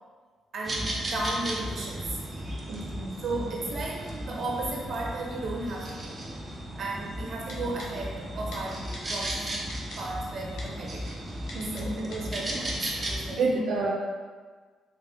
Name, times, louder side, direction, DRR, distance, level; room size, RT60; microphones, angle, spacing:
voice 1, 0.5-2.2 3.2-6.2 6.8-9.6 10.0-11.1 11.7-13.5, right 2 dB, 50° right, -2 dB, 0.8 m, -35 dB
sound 1, 0.6-13.4, right 1 dB, 25° right, 0.6 m, -35 dB
voice 2, 2.7-3.2 11.5-12.0 13.4-13.9, right 3 dB, 80° right, -4 dB, 0.4 m, -29 dB
Typing, 7.5-7.9 8.5-8.6 8.9-9.3 9.7-10.0 10.6-10.7 11.5-11.8 12.1-12.6 12.9-13.0, left 2 dB, 80° left, 0.7 m, -42 dB
3.5 x 2.3 x 3.4 m, 1.5 s
cardioid pair, 90°, 0 cm